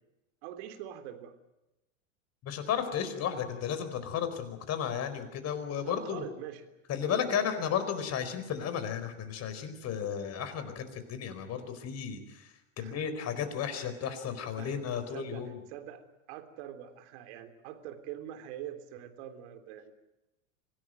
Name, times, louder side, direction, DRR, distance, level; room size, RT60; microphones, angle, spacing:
voice 1, 0.4-1.3 5.7-6.7 7.0-7.5 12.8-13.1 13.7-14.0 14.6-14.8 15.1-19.9, right 11 dB, 60° right, 9 dB, 3.5 m, -44 dB
voice 2, 2.4-6.2 6.9-15.6, left 8 dB, 40° left, 10 dB, 4.6 m, -34 dB
25.5 x 17.5 x 9.3 m, 0.98 s
hypercardioid pair, 95°, 39 cm